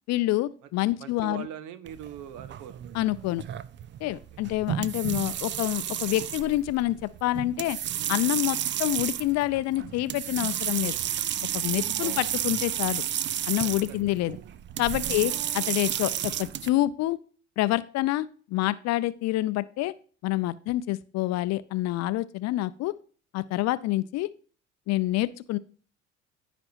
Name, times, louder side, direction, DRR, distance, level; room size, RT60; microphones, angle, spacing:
voice 1, 0.1-1.5 2.9-3.4 4.0-7.8 8.1-11.0 11.5-13.0 13.5-14.4 14.8-17.2 17.6-19.9 20.2-22.9 23.3-24.3 24.9-25.6, left 16 dB, 45° left, 16 dB, 0.6 m, -27 dB
voice 2, 1.0-2.8 4.1-4.2 12.0-12.3 13.6-14.0, right 9 dB, 55° right, 15 dB, 1.0 m, -42 dB
sound 1, 1.9-16.7, right 10 dB, 30° right, 0.5 m, -32 dB
15.0 x 5.1 x 2.6 m, 0.41 s
figure-of-eight pair, 55°, 36 cm